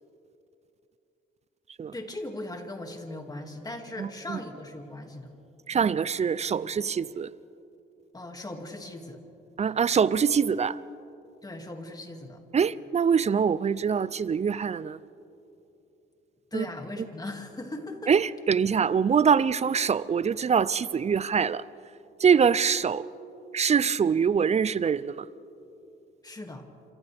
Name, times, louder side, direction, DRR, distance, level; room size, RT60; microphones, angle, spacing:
voice 1, 1.9-5.3 8.1-9.2 11.4-12.4 16.5-18.1 26.2-26.6, left 2 dB, 20° left, 2.4 m, -38 dB
voice 2, 4.0-4.4 5.7-7.3 9.6-10.8 12.5-15.0 16.5-16.7 18.1-21.6 22.2-23.1 23.5-25.3, right 6 dB, 35° right, 0.5 m, -24 dB
27.5 x 26.5 x 3.5 m
cardioid pair, 90°, 20 cm